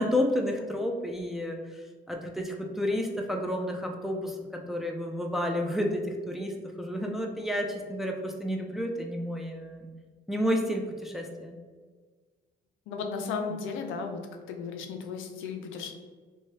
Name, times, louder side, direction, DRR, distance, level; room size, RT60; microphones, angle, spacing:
voice 1, 0.0-1.8 2.1-9.9 10.3-11.6, left 1 dB, ahead, 1 dB, 0.4 m, -31 dB
voice 2, 12.9-14.2 14.5-15.9, left 5 dB, 90° left, 4 dB, 0.4 m, -35 dB
3.1 x 2.2 x 2.7 m, 1.5 s
cardioid pair, 90°, 20 cm